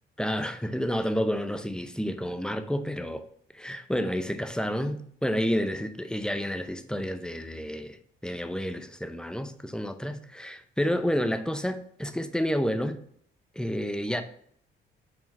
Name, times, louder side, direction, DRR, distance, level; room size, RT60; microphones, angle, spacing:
voice 1, 0.2-3.2 3.5-8.0 8.2-13.0 13.6-14.2, equal, 5° left, 0.6 m, -30 dB
5.0 x 3.6 x 5.2 m
cardioid pair, 90°, 20 cm